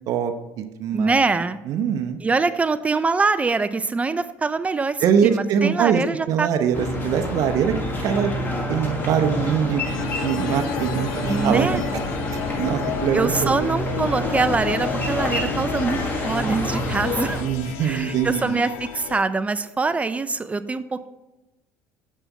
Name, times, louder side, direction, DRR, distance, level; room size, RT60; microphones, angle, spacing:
voice 1, 0.1-1.2 1.7-2.2 5.0-6.0 6.3-7.7 8.0-8.3 8.7-9.8 10.2-11.8 12.6-13.7 17.4-18.6, right 8 dB, 60° right, 6 dB, 0.7 m, -23 dB
voice 2, 0.9-1.6 2.2-6.5 11.3-11.8 13.1-17.4 17.8-21.1, right 4 dB, 20° right, 13 dB, 0.4 m, -24 dB
sound 1, 6.7-17.4, left 1 dB, 30° left, 1.7 m, -27 dB
sound 2, 9.8-19.2, left 10 dB, 90° left, 0.5 m, -33 dB
7.3 x 5.5 x 4.0 m, 1.0 s
supercardioid pair, 90°, 7 cm